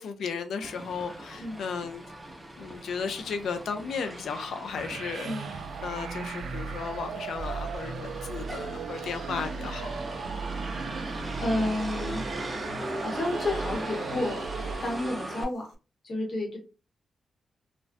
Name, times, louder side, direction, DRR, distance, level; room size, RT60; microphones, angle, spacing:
voice 1, 0.0-2.0 2.6-9.9, left 5 dB, 80° left, 8 dB, 0.3 m, -35 dB
Motor vehicle (road), 0.6-15.4, right 1 dB, 10° right, 0.5 m, -39 dB
sound 1, 4.8-15.3, right 5 dB, 80° right, 0.3 m, -37 dB
voice 2, 5.2-5.6 10.9-12.2 13.0-14.5 14.8-15.7 16.0-16.6, left 1 dB, 40° left, -1 dB, 0.9 m, -31 dB
2.5 x 2.1 x 2.4 m, 0.32 s
wide cardioid pair, 175°, 0 cm